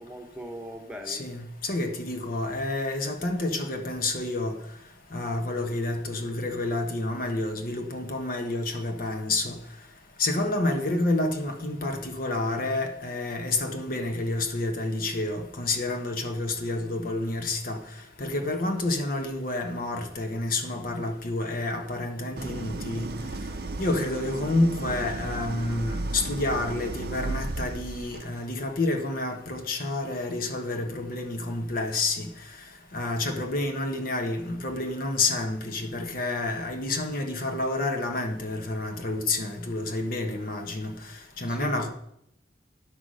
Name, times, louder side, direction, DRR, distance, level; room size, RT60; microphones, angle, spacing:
voice 1, 0.0-1.2 41.3-41.9, equal, 5° right, 2 dB, 1.2 m, -40 dB
voice 2, 1.1-4.5 5.1-9.6 10.2-17.8 18.2-23.1 23.8-32.3 32.9-40.9 41.4-41.9, left 2 dB, 50° left, 4 dB, 1.3 m, -29 dB
Idling, 22.4-28.4, right 2 dB, 60° right, 0.6 m, -34 dB
10.0 x 6.0 x 6.3 m, 0.73 s
head